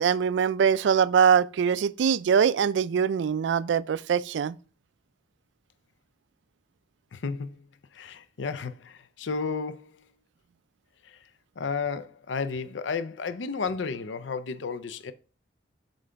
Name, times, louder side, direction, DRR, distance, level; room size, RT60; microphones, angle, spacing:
voice 1, 0.0-4.6, right 7 dB, 75° right, 0.3 m, -23 dB
voice 2, 7.1-7.6 7.9-10.0 11.0-11.3 11.6-15.1, left 5 dB, 85° left, 0.5 m, -33 dB
7.4 x 3.9 x 3.3 m
head